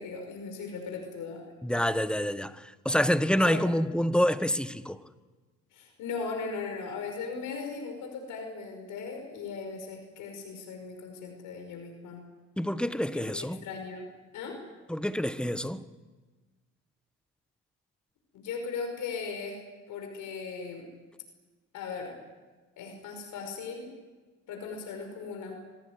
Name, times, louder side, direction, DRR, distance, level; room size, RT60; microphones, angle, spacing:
voice 1, 0.0-1.5 3.4-3.6 5.7-12.2 13.1-14.6 18.3-19.6 19.9-20.9 21.7-22.2 22.8-23.9 24.5-25.6, left 5 dB, 85° left, 5.5 m, -38 dB
voice 2, 1.6-5.0 12.6-13.6 14.9-15.9, equal, 5° left, 1.3 m, -27 dB
24.5 x 19.0 x 9.7 m
cardioid pair, 90°, 30 cm